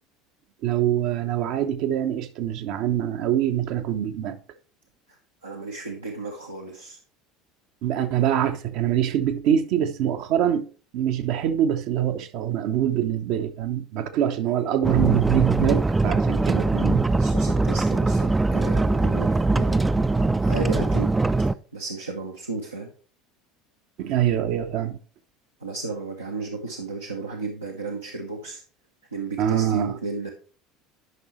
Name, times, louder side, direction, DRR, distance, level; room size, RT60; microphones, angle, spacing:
voice 1, 0.6-4.4 7.8-10.7 10.9-17.0 24.0-25.0 29.4-30.0, right 10 dB, 55° right, 0.7 m, -24 dB
voice 2, 5.1-7.0 14.3-15.0 17.2-19.8 20.1-21.1 21.7-22.9 25.6-28.6 29.1-30.3, right 3 dB, 85° right, 0.8 m, -34 dB
sound 1, 14.8-21.5, right 3 dB, 15° right, 0.3 m, -22 dB
11.0 x 5.3 x 3.1 m
figure-of-eight pair, 70°, 0 cm